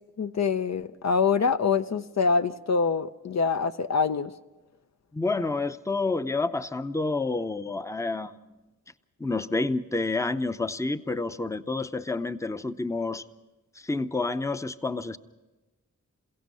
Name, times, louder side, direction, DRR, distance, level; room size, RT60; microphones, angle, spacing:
voice 1, 0.2-4.3, left 5 dB, 60° left, 9 dB, 0.7 m, -25 dB
voice 2, 5.1-8.4 9.2-13.2 13.8-15.2, left 3 dB, 10° left, 11 dB, 0.7 m, -29 dB
28.5 x 16.5 x 5.5 m, 1.1 s
wide cardioid pair, 85°, 31 cm